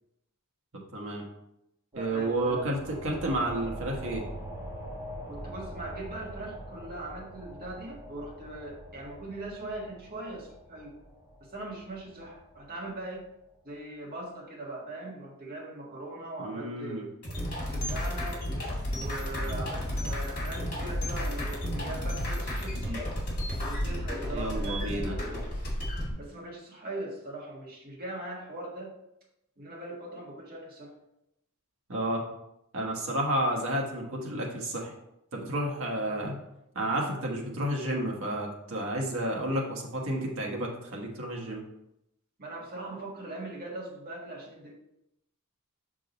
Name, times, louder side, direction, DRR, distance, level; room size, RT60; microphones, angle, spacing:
voice 1, 0.9-1.2 1.9-4.2 16.4-17.0 24.3-25.2 31.9-32.2 32.7-34.9 35.3-36.4 36.7-41.6, right 1 dB, 65° right, -1 dB, 1.3 m, -31 dB
sound 1, 1.9-13.2, equal, 15° right, 1.5 m, -43 dB
voice 2, 1.9-2.7 5.3-10.9 11.4-13.2 13.6-18.4 18.9-23.0 23.5-25.1 26.2-28.9 29.6-30.9 42.4-44.7, right 2 dB, 45° right, -3 dB, 1.6 m, -40 dB
sound 2, 17.2-26.1, equal, 40° left, 2.1 m, -32 dB
6.5 x 3.7 x 4.0 m, 0.83 s
head